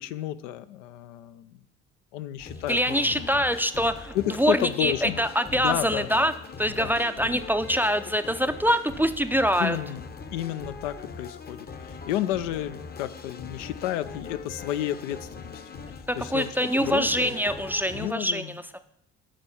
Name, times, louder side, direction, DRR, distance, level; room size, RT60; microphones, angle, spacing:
voice 1, 0.0-1.6 2.1-3.3 4.1-5.2 5.5-6.3 6.8-7.0 7.2-7.4 9.6-10.0 10.3-15.6 15.9-16.5 16.7-17.3 17.9-18.6, left 12 dB, 80° left, 12 dB, 0.6 m, -31 dB
sound 1, 2.4-18.1, left 4 dB, 25° left, 0.8 m, -41 dB
voice 2, 2.7-6.3 6.6-9.8 16.1-18.4 18.7-18.8, equal, 5° right, 11 dB, 0.5 m, -24 dB
10.5 x 4.2 x 5.7 m, 0.77 s
hypercardioid pair, 55°, 36 cm